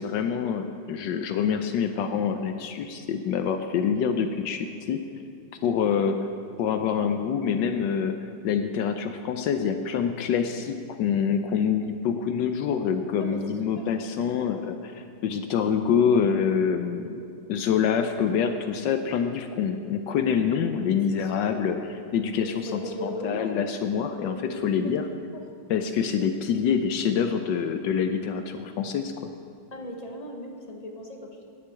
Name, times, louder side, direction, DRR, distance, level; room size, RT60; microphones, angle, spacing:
voice 1, 0.0-5.0 5.6-6.3 6.6-8.2 8.4-17.2 17.5-21.8 22.1-25.1 25.7-29.3, left 7 dB, 75° left, 7 dB, 1.3 m, -26 dB
voice 2, 21.1-21.8 22.4-23.7 24.1-25.0 25.3-25.4 29.7-31.4, left 1 dB, 25° left, 1 dB, 1.0 m, -37 dB
9.8 x 8.4 x 8.3 m, 2.5 s
omnidirectional pair, 2.0 m